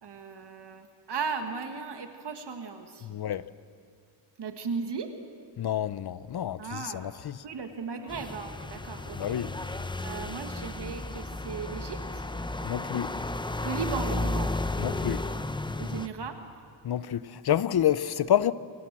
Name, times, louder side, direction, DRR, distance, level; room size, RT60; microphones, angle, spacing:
voice 1, 0.0-3.2 4.4-5.2 6.6-7.1 7.4-9.7 10.0-12.2 13.6-14.6 15.8-16.4, right 5 dB, 55° right, 1.8 m, -36 dB
voice 2, 3.0-3.5 5.6-7.3 9.2-9.5 12.6-13.1 14.8-15.3 16.8-18.5, left 10 dB, 55° left, 0.7 m, -28 dB
sound 1, 8.1-16.1, left 2 dB, 10° left, 0.8 m, -33 dB
28.5 x 24.5 x 7.4 m
wide cardioid pair, 155°, 47 cm